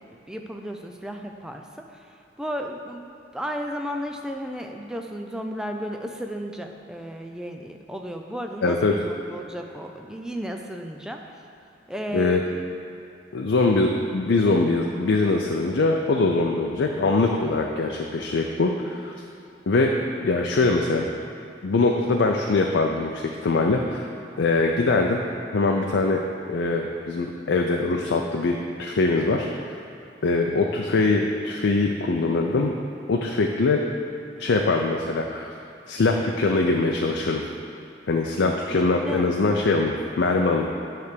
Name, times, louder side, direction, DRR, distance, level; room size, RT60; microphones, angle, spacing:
voice 1, 0.3-11.3 11.9-12.6 39.0-39.3, equal, 5° right, 3 dB, 0.4 m, -34 dB
voice 2, 8.6-8.9 12.1-12.4 13.3-19.1 19.7-19.9 20.2-21.1 21.6-24.1 24.4-25.2 25.5-26.2 26.5-29.8 30.2-32.7 33.1-33.8 34.4-35.5 35.9-37.4 38.1-40.7, left 3 dB, 85° left, 1 dB, 0.5 m, -22 dB
9.6 x 3.4 x 6.7 m, 2.8 s
head